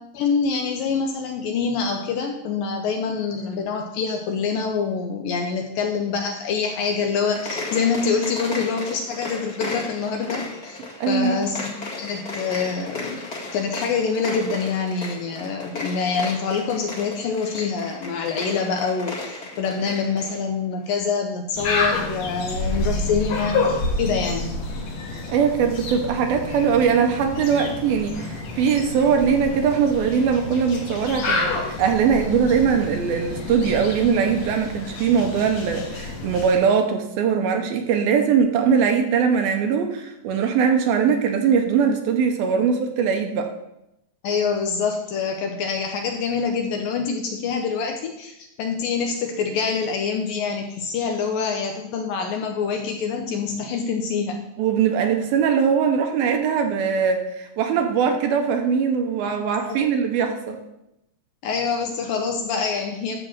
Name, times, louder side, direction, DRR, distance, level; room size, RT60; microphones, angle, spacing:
voice 1, 0.1-10.8 11.1-13.2 13.5-24.5 44.2-54.4 59.2-59.4 59.7-59.8 61.4-63.2, left 5 dB, 75° left, 4 dB, 2.2 m, -25 dB
sound 1, 7.2-20.4, left 2 dB, 35° left, 1.5 m, -35 dB
voice 2, 11.0-11.4 25.3-43.5 54.6-60.6, right 6 dB, 75° right, 4 dB, 2.6 m, -21 dB
sound 2, 21.5-36.6, left 3 dB, 50° left, 2.5 m, -29 dB
12.5 x 4.4 x 7.3 m, 0.84 s
omnidirectional pair, 4.7 m